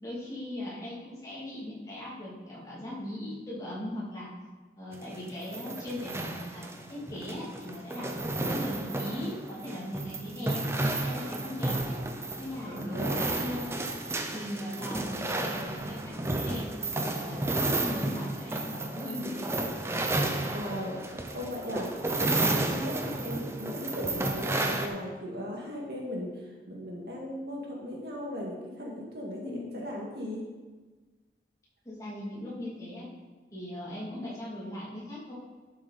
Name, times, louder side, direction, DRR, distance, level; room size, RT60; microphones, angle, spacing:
voice 1, 0.0-4.3 4.8-8.1 8.4-12.0 12.4-13.8 14.3-19.6 29.4-30.0 31.8-33.1 33.5-35.3, left 1 dB, 20° left, -7 dB, 2.6 m, -39 dB
sound 1, 4.9-24.9, right 2 dB, 15° right, 0.6 m, -32 dB
voice 2, 12.7-13.4 20.2-29.4 29.7-30.4, left 1 dB, 65° right, -2 dB, 1.9 m, -37 dB
11.5 x 6.3 x 4.2 m, 1.3 s
head